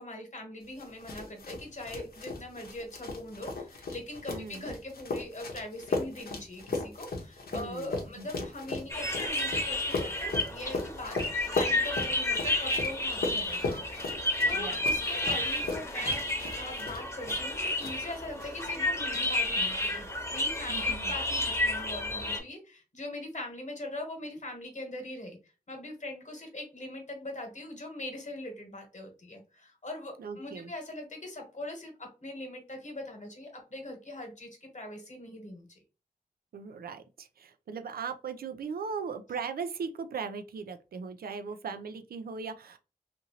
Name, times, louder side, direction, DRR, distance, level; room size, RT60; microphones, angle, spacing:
voice 1, 0.0-11.2 11.4-13.8 14.1-16.2 16.6-35.8, left 1 dB, 55° left, 1.2 m, -42 dB
sound 1, 0.8-17.5 17.8-18.5, left 3 dB, 90° left, 0.8 m, -37 dB
voice 2, 4.3-4.7 7.5-8.4 14.5-14.8 20.7-21.1 30.2-30.7 36.5-42.8, right 5 dB, 85° right, 0.4 m, -38 dB
sound 2, 8.9-22.4, left 1 dB, 20° left, 0.8 m, -31 dB
2.7 x 2.6 x 2.8 m
cardioid pair, 50°, 15 cm